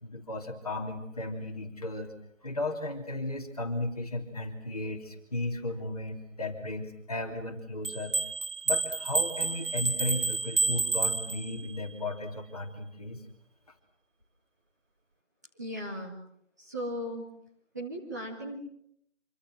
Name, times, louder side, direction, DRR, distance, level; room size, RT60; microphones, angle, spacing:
voice 1, 0.0-2.1 2.4-8.2 8.6-13.2, left 2 dB, 30° left, 2 dB, 3.2 m, -35 dB
sound 1, 7.8-11.8, right 4 dB, 85° right, 1.3 m, -30 dB
voice 2, 15.6-16.1 16.6-17.3 17.7-18.6, equal, 15° right, -3 dB, 2.0 m, -37 dB
26.5 x 25.0 x 7.7 m, 0.71 s
figure-of-eight pair, 175°, 37 cm